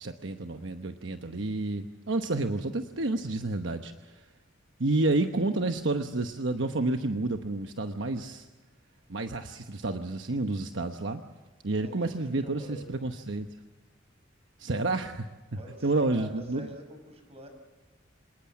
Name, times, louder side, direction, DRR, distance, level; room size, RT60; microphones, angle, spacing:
voice 1, 0.0-4.1 4.8-8.5 9.1-11.2 11.6-13.5 14.6-15.3 15.8-16.7, right 2 dB, 70° right, 6 dB, 1.0 m, -30 dB
voice 2, 11.8-12.8 15.6-17.5, right 1 dB, 35° right, 6 dB, 5.8 m, -46 dB
26.5 x 19.5 x 7.3 m, 1.2 s
head